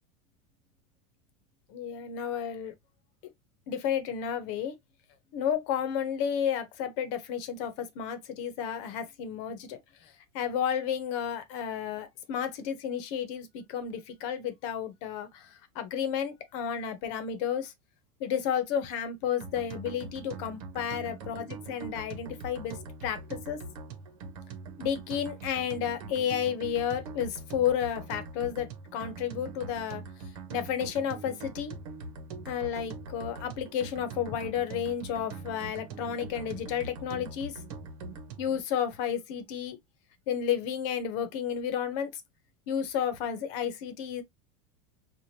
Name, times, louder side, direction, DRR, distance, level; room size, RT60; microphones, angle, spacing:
voice 1, 1.7-2.7 3.7-4.7 5.3-9.8 10.3-15.5 15.7-17.7 18.2-22.8 23.0-23.6 24.8-30.0 30.5-31.7 32.4-37.5 38.4-39.8 40.3-42.2 42.7-44.2, left 8 dB, 50° left, 1.0 m, -32 dB
sound 1, 19.4-38.6, right 4 dB, 65° right, 1.1 m, -43 dB
4.9 x 2.5 x 2.8 m
supercardioid pair, 155°, 19 cm